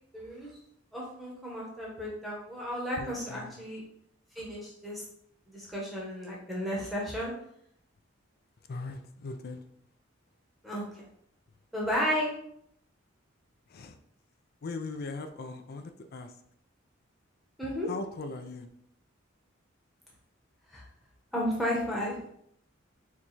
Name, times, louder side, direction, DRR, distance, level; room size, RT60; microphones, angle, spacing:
voice 1, 0.1-0.5 0.9-3.8 4.3-5.0 5.5-7.3 10.6-11.0 11.7-12.3 17.6-17.9 20.7-20.8 21.3-22.2, equal, ahead, -4 dB, 0.9 m, -33 dB
voice 2, 3.0-3.7 8.7-9.6 13.7-14.0 14.6-16.3 17.9-18.7, left 3 dB, 50° left, 8 dB, 0.4 m, -39 dB
4.6 x 2.3 x 4.0 m, 0.71 s
head